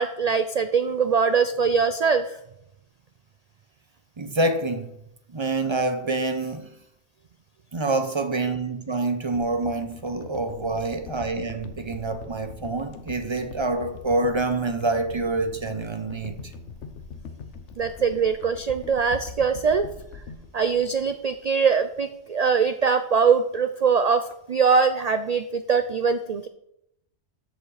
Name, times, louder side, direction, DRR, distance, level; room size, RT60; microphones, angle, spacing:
voice 1, 0.0-2.4 17.8-19.9 20.5-26.5, right 5 dB, 70° right, 0.3 m, -22 dB
voice 2, 4.2-4.9 5.3-6.7 7.7-16.5, right 2 dB, 30° right, 0.7 m, -27 dB
sound 1, 9.3-21.7 22.0-22.1, left 5 dB, 75° left, 1.1 m, -42 dB
13.5 x 5.5 x 4.0 m
omnidirectional pair, 1.2 m